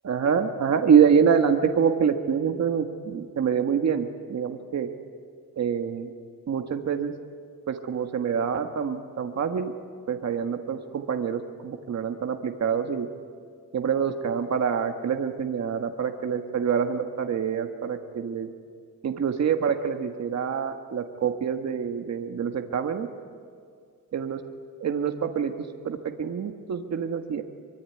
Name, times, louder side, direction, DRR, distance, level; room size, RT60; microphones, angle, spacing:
voice 1, 0.0-4.9 5.6-6.1 6.5-7.1 7.7-9.7 10.1-13.1 13.7-18.5 19.0-23.1 24.1-24.4 24.8-25.5 25.8-27.4, right 7 dB, 55° right, 6 dB, 1.5 m, -26 dB
24.0 x 23.0 x 9.7 m, 2.1 s
wide cardioid pair, 165°, 33 cm